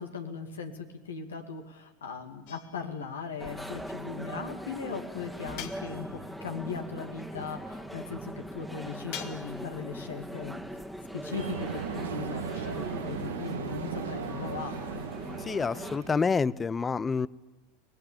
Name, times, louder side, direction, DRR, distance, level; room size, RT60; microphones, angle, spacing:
voice 1, 0.0-10.6 11.1-15.0, left 5 dB, 85° left, 5 dB, 2.4 m, -38 dB
sound 1, 2.5-3.1 5.6-6.4 9.1-9.8, left 10 dB, 60° left, 1.8 m, -43 dB
sound 2, 3.4-16.0, equal, ahead, 1.9 m, -41 dB
sound 3, 11.3-16.4, right 7 dB, 85° right, 1.6 m, -37 dB
voice 2, 15.4-17.3, left 5 dB, 20° left, 21 dB, 0.7 m, -28 dB
24.0 x 18.5 x 9.0 m, 1.1 s
hypercardioid pair, 90°, 0 cm